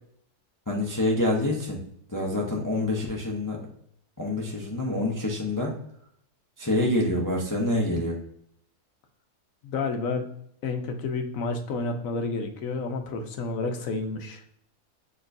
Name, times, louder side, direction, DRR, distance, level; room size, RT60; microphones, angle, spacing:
voice 1, 0.7-1.8 2.1-3.6 4.2-5.7 6.6-8.2, left 1 dB, 30° left, -1 dB, 0.4 m, -26 dB
voice 2, 9.6-10.3 10.6-14.4, left 3 dB, 70° left, 5 dB, 1.0 m, -30 dB
6.5 x 3.0 x 2.5 m, 0.71 s
omnidirectional pair, 1.6 m